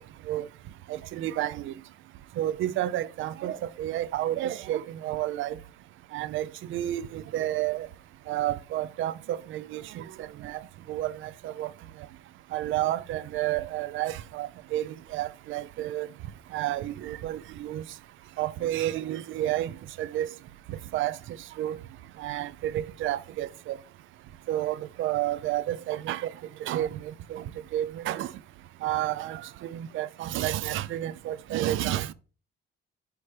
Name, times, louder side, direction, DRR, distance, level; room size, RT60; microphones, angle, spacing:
voice 1, 0.9-1.7 2.4-5.6 6.1-7.9 8.3-10.0 10.4-10.6 10.9-11.7 12.5-16.1 16.5-17.8 18.4-19.7 20.0-20.3 20.9-21.2 21.6-21.8 22.2-23.8 24.5-26.3 26.7-26.9 27.3-27.4 27.7-28.3 28.8-29.4 29.7-32.1, right 13 dB, 80° right, 0.5 m, -30 dB
9.7 x 5.0 x 3.3 m
cardioid pair, 90°, 20 cm